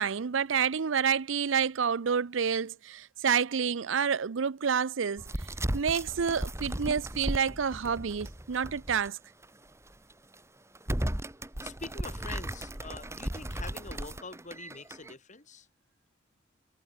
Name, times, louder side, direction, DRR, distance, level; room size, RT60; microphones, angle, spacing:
voice 1, 0.0-5.2 5.7-9.2, right 7 dB, 80° right, 0.6 m, -28 dB
sound 1, 5.2-9.1 9.4-9.5 10.1-10.3 10.7-15.1, right 1 dB, 15° right, 1.8 m, -36 dB
voice 2, 11.6-15.7, left 3 dB, 40° left, 5.2 m, -45 dB
head